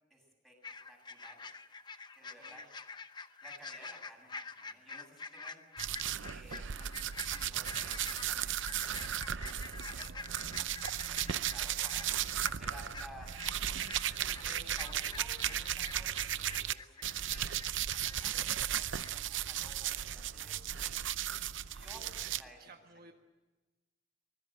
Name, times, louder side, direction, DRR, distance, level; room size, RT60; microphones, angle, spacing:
voice 1, 0.1-0.6 0.9-1.4 2.1-2.7 3.4-5.6 6.2-10.7 11.1-12.1 12.5-13.3 14.4-17.7 18.0-22.6, equal, ahead, 1 dB, 7.8 m, -56 dB
sound 1, 0.6-18.7 19.0-19.1, left 4 dB, 25° left, 0.9 m, -48 dB
voice 2, 2.2-2.7 21.7-23.1, right 4 dB, 50° right, 3 dB, 1.6 m, -58 dB
sound 2, 5.8-16.7 17.0-22.4, right 10 dB, 75° right, 0.7 m, -36 dB
24.5 x 20.5 x 7.9 m, 1.1 s
head